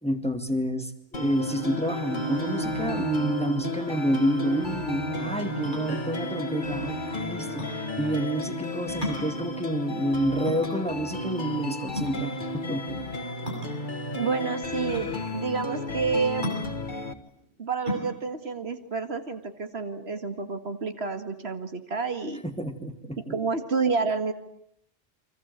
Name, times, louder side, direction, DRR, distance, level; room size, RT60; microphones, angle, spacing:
voice 1, 0.0-13.0 22.4-23.3, right 1 dB, 5° left, 7 dB, 2.1 m, -29 dB
sound 1, 1.1-17.1, left 2 dB, 50° left, 1.8 m, -34 dB
Bowed string instrument, 1.3-8.4, right 2 dB, 25° right, 2.5 m, -36 dB
sound 2, 5.7-19.9, equal, 50° right, 6.8 m, -38 dB
voice 2, 14.2-16.5 17.6-22.4 23.3-24.3, right 5 dB, 70° right, 8 dB, 2.1 m, -29 dB
29.5 x 24.5 x 8.1 m, 0.72 s
omnidirectional pair, 1.1 m